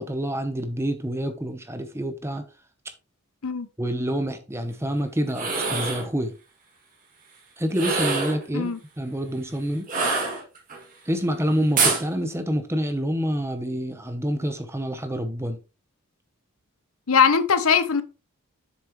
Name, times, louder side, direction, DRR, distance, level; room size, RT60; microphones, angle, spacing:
voice 1, 0.0-2.4 3.8-6.3 7.6-9.8 11.1-15.6, equal, 10° right, 0.9 m, -27 dB
sound 1, 5.3-6.1 7.7-8.4 9.9-10.8 11.8-12.0, right 4 dB, 40° right, 2.4 m, -24 dB
voice 2, 17.1-18.0, left 6 dB, 80° left, 0.8 m, -20 dB
7.4 x 6.7 x 3.1 m
head